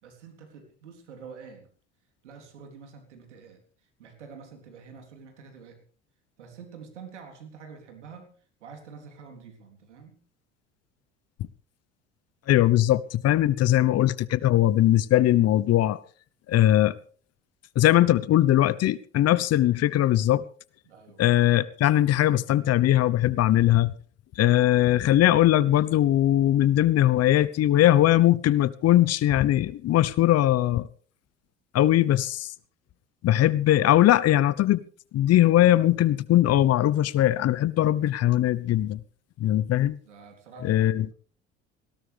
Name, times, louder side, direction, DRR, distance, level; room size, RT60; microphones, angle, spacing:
voice 1, 0.0-1.7 2.2-3.6 4.0-5.8 6.4-8.3 8.6-10.2 20.8-21.2 40.0-41.1, right 5 dB, 85° right, 3.8 m, -47 dB
voice 2, 12.5-16.0 16.5-17.0 17.8-20.4 21.2-23.9 24.4-30.9 31.7-32.5 33.2-34.8 35.1-39.0 39.4-40.0 40.6-41.1, left 13 dB, 45° left, 1.0 m, -20 dB
19.5 x 17.5 x 3.5 m
hypercardioid pair, 65°, 35 cm